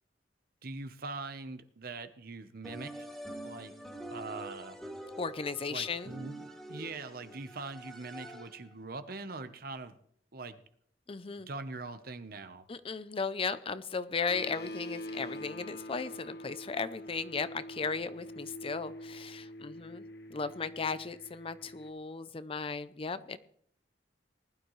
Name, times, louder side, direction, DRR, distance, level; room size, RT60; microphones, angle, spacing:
voice 1, 0.6-3.1 3.4-3.7 4.1-4.8 5.7-9.9 10.3-10.6 11.4-12.6, right 3 dB, 60° right, 10 dB, 0.9 m, -42 dB
sound 1, 2.6-8.7, right 1 dB, ahead, 2.4 m, -45 dB
voice 2, 5.2-6.1 11.1-11.5 12.7-20.0 20.3-23.4, left 5 dB, 30° left, 14 dB, 0.5 m, -36 dB
sound 2, 14.3-21.9, left 1 dB, 65° left, 1.1 m, -44 dB
20.0 x 11.5 x 3.2 m, 0.63 s
head